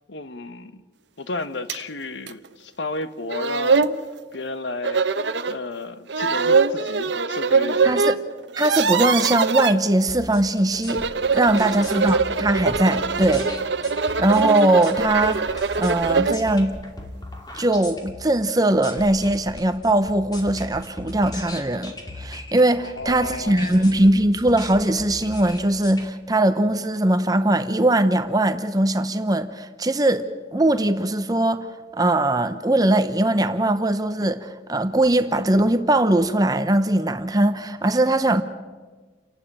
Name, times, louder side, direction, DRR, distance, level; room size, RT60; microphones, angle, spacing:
voice 1, 0.1-0.8 1.2-3.9 4.3-5.0 5.5-8.1 11.5-11.8 22.8-23.9, left 3 dB, 75° left, 1.1 m, -33 dB
sound 1, 1.7-1.8 2.3-2.4 3.0-3.1 3.3-4.0 4.8-5.6 6.1-8.2 8.4-9.7 10.7-16.4, right 4 dB, 75° right, 0.9 m, -22 dB
voice 2, 7.8-8.2 8.6-11.0 11.3-13.5 14.2-15.4 15.8-16.8 17.5-30.3 30.5-31.7 31.9-38.4, right 1 dB, 20° right, 0.8 m, -20 dB
sound 2, 10.1-26.0, left 1 dB, 20° left, 2.6 m, -38 dB
29.5 x 12.0 x 8.8 m
head